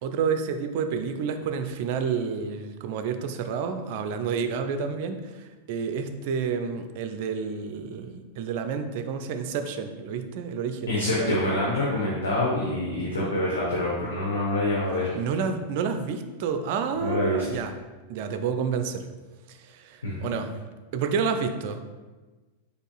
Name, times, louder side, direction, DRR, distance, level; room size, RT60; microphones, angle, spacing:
voice 1, 0.0-11.5 15.1-17.7 18.1-19.1 19.5-20.5 20.9-21.8, right 6 dB, 50° right, 8 dB, 0.4 m, -29 dB
voice 2, 10.9-15.1 17.0-17.4 20.0-20.3, left 1 dB, 70° left, -6 dB, 0.9 m, -26 dB
5.2 x 4.2 x 2.3 m, 1.3 s
figure-of-eight pair, 90°, 0 cm